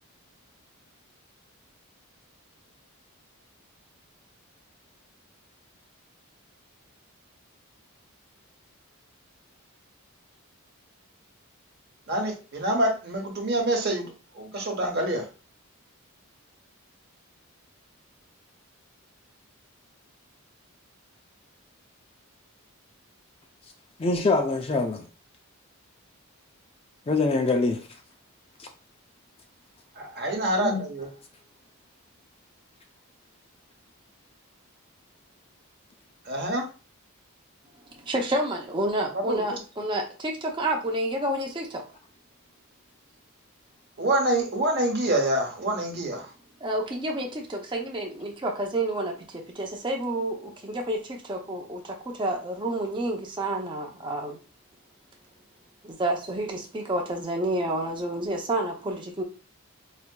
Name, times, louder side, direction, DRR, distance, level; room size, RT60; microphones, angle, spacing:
voice 1, 12.1-15.3 29.9-31.1 36.2-36.7 39.1-39.6 44.0-46.3, right 1 dB, 45° right, 0.9 m, -26 dB
voice 2, 24.0-25.1 27.1-27.9 28.6-28.7 30.3-30.8, left 3 dB, 25° left, 0.3 m, -25 dB
voice 3, 38.0-41.8 46.6-54.4 55.8-59.2, right 1 dB, 20° right, 0.5 m, -29 dB
4.3 x 2.6 x 2.2 m
head